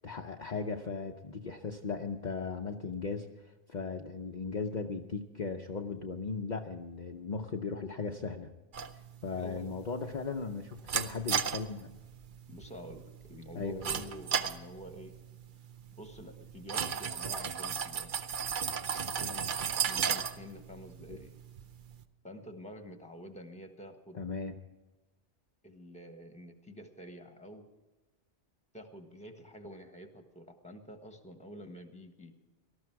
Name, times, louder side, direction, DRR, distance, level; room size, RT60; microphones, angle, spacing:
voice 1, 0.0-8.5 9.2-12.0 13.5-14.0 21.1-21.2 24.1-24.6, left 4 dB, 45° left, 3 dB, 0.8 m, -37 dB
sound 1, 8.7-22.0, right 7 dB, 50° right, 0.8 m, -36 dB
voice 2, 9.4-9.7 12.5-13.0 13.3-15.1 16.0-18.1 19.0-19.5 19.9-21.3 22.2-24.2 25.6-27.7 28.7-32.3, equal, 5° left, 6 dB, 1.4 m, -48 dB
18.5 x 13.0 x 4.7 m, 1.1 s
omnidirectional pair, 1.2 m